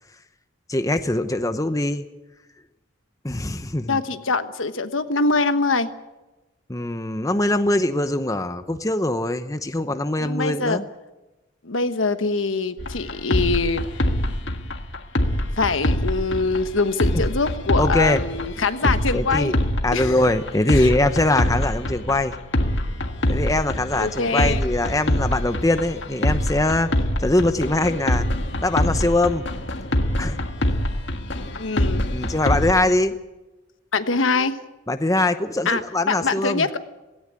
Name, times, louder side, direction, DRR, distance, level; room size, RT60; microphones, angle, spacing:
voice 1, 0.7-2.0 3.2-4.0 6.7-10.8 17.1-17.2 17.8-18.2 18.8-19.6 19.8-22.4 23.3-26.9 27.2-28.3 28.6-29.4 30.2-30.4 32.1-33.2 34.9-36.7, left 1 dB, 15° left, 9 dB, 0.8 m, -22 dB
voice 2, 3.9-5.9 10.2-10.8 11.6-14.1 15.6-19.5 19.9-20.2 20.7-20.9 24.0-24.6 31.6-32.0 33.9-34.6 35.6-35.8 36.1-36.8, left 3 dB, 85° left, 10 dB, 1.2 m, -23 dB
sound 1, 12.8-32.7, left 1 dB, 65° left, 1.7 m, -25 dB
17.5 x 17.5 x 9.6 m, 1.1 s
head